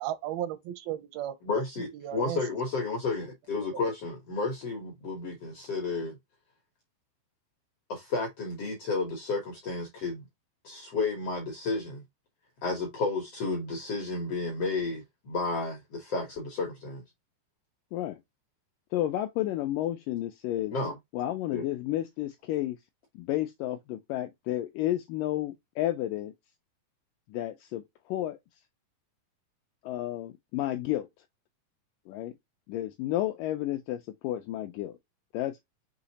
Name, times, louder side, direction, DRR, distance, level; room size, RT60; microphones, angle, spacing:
voice 1, 0.0-2.4 3.7-3.8, right 12 dB, 90° right, 2.6 m, -35 dB
voice 2, 1.5-6.2 7.9-10.2 10.6-12.0 12.6-17.0 20.7-20.9 21.5-21.6, left 3 dB, 70° left, 1.5 m, -32 dB
voice 3, 18.9-20.7 21.1-22.8 23.2-26.3 27.3-27.8 28.1-28.4 29.8-31.1 32.1-32.3 32.7-35.0 35.3-35.6, left 14 dB, 85° left, 1.9 m, -31 dB
6.3 x 3.0 x 2.7 m
omnidirectional pair, 4.3 m